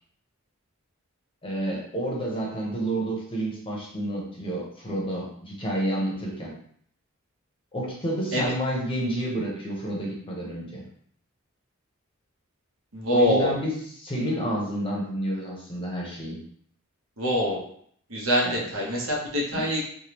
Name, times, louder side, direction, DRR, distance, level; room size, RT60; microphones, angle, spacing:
voice 1, 1.4-6.5 7.7-10.8 13.1-16.4 18.4-18.6 19.5-19.6, right 1 dB, 25° left, -3 dB, 0.8 m, -30 dB
voice 2, 12.9-13.6 17.2-17.6 18.1-19.8, equal, 70° right, -2 dB, 0.9 m, -24 dB
3.4 x 2.3 x 2.9 m, 0.62 s
head